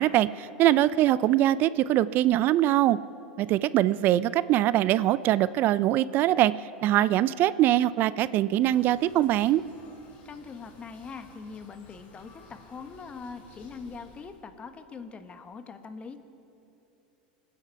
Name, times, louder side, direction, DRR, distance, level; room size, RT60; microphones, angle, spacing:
voice 1, 0.0-3.0 3.4-6.5 6.8-9.6, right 13 dB, 45° right, 18 dB, 0.4 m, -23 dB
sound 1, 8.6-14.5, left 3 dB, 40° left, 4.5 m, -55 dB
voice 2, 10.2-16.2, left 5 dB, 25° left, 8 dB, 1.3 m, -42 dB
26.5 x 10.0 x 4.7 m, 2.9 s
hypercardioid pair, 90°, 5 cm